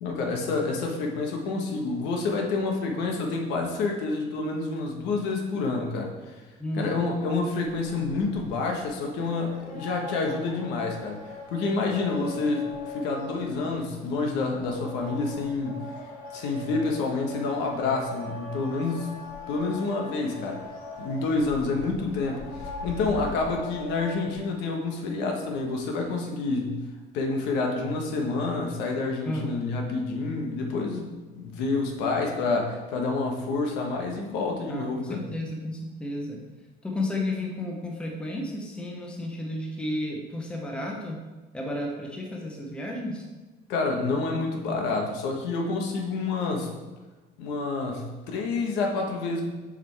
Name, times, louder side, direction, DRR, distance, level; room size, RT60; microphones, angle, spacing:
voice 1, 0.0-6.3 6.8-11.2 11.5-15.8 16.3-19.1 19.5-20.6 21.0-26.8 27.1-31.1 31.3-35.2 43.7-46.7 47.4-49.5, left 3 dB, 75° left, 1 dB, 1.2 m, -28 dB
voice 2, 6.6-7.0 29.2-29.7 34.7-36.4 36.8-41.2 41.5-43.2, left 1 dB, 5° left, -1 dB, 0.7 m, -32 dB
sound 1, 7.6-24.4, left 2 dB, 50° left, 1.7 m, -41 dB
7.6 x 5.1 x 3.4 m, 1.2 s
cardioid pair, 175°, 18 cm